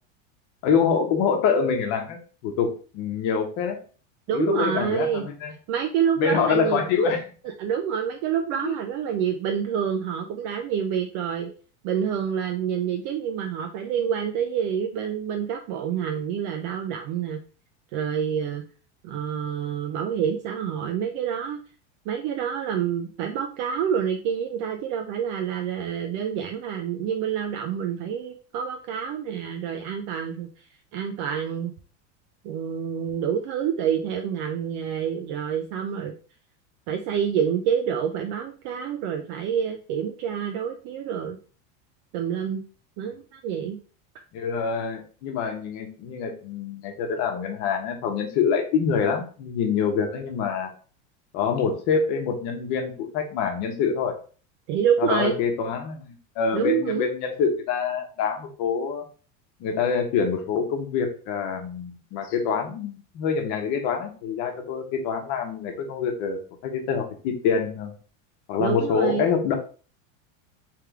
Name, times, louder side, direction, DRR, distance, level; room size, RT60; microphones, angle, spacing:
voice 1, 0.6-3.8 4.3-5.5 6.2-7.2 8.6-8.7 44.3-50.7 51.3-54.1 55.0-59.0 59.6-67.9 68.5-69.6, left 6 dB, 50° left, 4 dB, 1.1 m, -25 dB
voice 2, 4.3-5.2 5.7-7.0 7.6-11.5 11.8-17.4 17.9-18.6 19.0-21.6 22.1-31.7 32.4-36.1 36.9-41.4 42.1-42.6 43.0-43.8 54.7-55.3 56.5-57.0 68.6-69.3, right 8 dB, 45° right, 4 dB, 0.4 m, -27 dB
3.3 x 3.3 x 3.5 m, 0.39 s
supercardioid pair, 145°, 37 cm